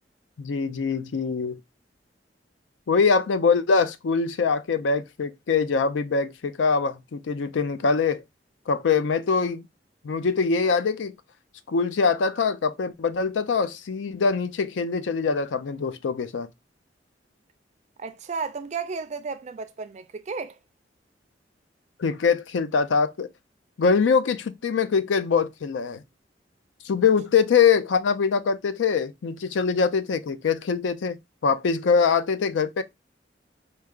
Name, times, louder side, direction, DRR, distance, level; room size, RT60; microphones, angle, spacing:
voice 1, 0.4-1.6 2.9-8.2 8.7-9.6 10.0-11.1 11.7-16.5 22.0-23.3 23.8-26.0 26.8-31.2 31.4-32.8, left 5 dB, 90° left, 0.4 m, -23 dB
voice 2, 18.0-20.6, right 5 dB, 40° right, 0.4 m, -33 dB
4.7 x 2.8 x 2.3 m
head